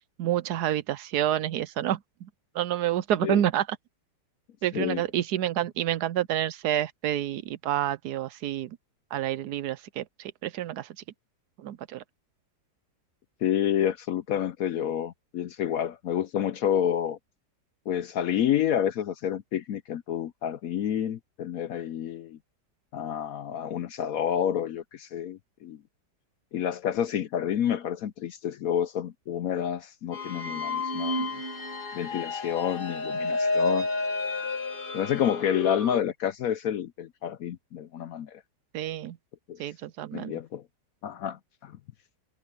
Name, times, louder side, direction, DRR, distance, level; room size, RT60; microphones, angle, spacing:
voice 1, 0.2-2.3 2.5-3.8 4.6-8.8 9.1-11.0 11.6-12.0 38.7-39.2 39.6-40.4, right 11 dB, 70° right, 1.1 m, -28 dB
voice 2, 13.4-17.2 17.9-22.4 22.9-25.8 26.5-31.3 31.9-33.9 34.9-38.4 39.5-39.6 40.1-40.6 41.0-41.7, left 9 dB, 65° left, 0.9 m, -29 dB
sound 1, 30.1-36.0, left 3 dB, 30° left, 1.7 m, -30 dB
omnidirectional pair, 1.9 m